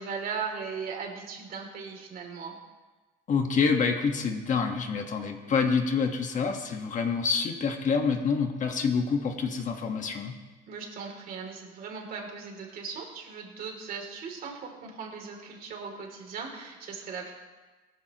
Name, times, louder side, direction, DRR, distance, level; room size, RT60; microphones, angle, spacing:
voice 1, 0.0-2.6 10.7-17.3, right 5 dB, 60° right, 1 dB, 3.0 m, -38 dB
voice 2, 3.3-10.3, left 5 dB, 50° left, 4 dB, 1.5 m, -27 dB
17.5 x 14.0 x 3.0 m, 1.2 s
cardioid pair, 110°, 17 cm